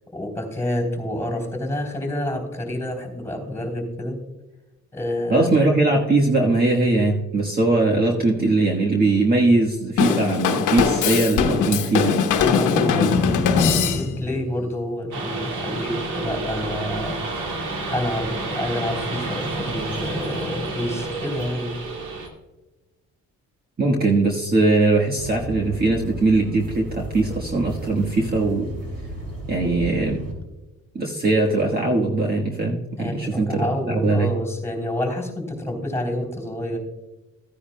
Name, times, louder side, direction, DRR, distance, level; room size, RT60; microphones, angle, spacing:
voice 1, 0.1-4.2 4.9-5.5 12.4-17.2 17.5-21.7 33.0-36.8, left 1 dB, 10° left, 5 dB, 3.3 m, -28 dB
voice 2, 5.3-12.2 23.8-28.7 29.5-30.2 30.9-34.3, right 2 dB, 30° right, -1 dB, 1.4 m, -20 dB
Drum kit / Drum, 10.0-14.3, left 6 dB, 90° left, 1.1 m, -20 dB
sound 1, 15.1-22.3, right 2 dB, 75° right, 2.0 m, -29 dB
sound 2, 25.2-30.3, right 1 dB, 55° right, 3.8 m, -34 dB
14.5 x 9.8 x 2.2 m, 1.1 s
cardioid pair, 90°, 30 cm